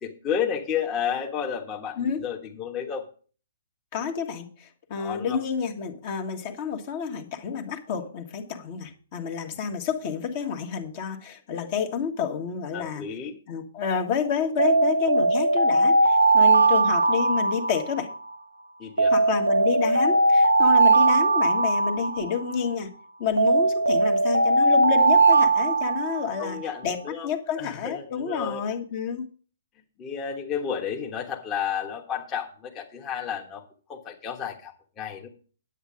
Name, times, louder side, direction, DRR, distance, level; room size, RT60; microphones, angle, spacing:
voice 1, 0.0-3.0 5.0-5.4 12.7-13.4 18.8-19.1 26.4-27.3 27.6-28.6 30.0-33.6 33.9-35.3, left 7 dB, 20° left, -1 dB, 1.4 m, -31 dB
voice 2, 3.9-13.0 13.5-18.1 19.1-22.9 23.2-29.3, left 6 dB, 40° left, 4 dB, 1.7 m, -29 dB
Alarm, 14.6-18.3 19.0-22.7 23.4-26.6, right 3 dB, 85° right, 0.8 m, -20 dB
10.0 x 8.4 x 4.9 m, 0.40 s
figure-of-eight pair, 125°, 0 cm